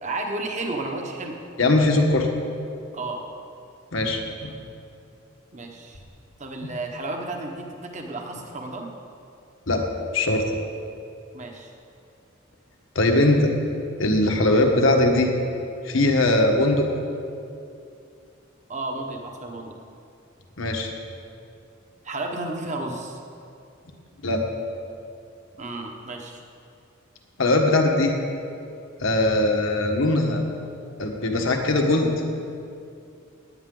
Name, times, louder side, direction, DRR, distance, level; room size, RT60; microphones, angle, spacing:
voice 1, 0.0-1.4 2.9-3.2 5.5-6.0 6.4-8.9 11.3-11.7 18.7-19.8 22.0-23.2 25.6-26.4, right 2 dB, 35° right, 2 dB, 1.3 m, -32 dB
voice 2, 1.6-2.3 3.9-4.5 6.6-6.7 9.7-9.9 10.1-10.4 12.9-13.5 14.0-15.3 15.8-16.9 20.6-20.9 24.2-24.5 27.4-28.1 29.0-30.4 31.0-32.1, left 2 dB, 80° left, 2 dB, 1.5 m, -20 dB
17.5 x 9.4 x 3.9 m, 2.5 s
head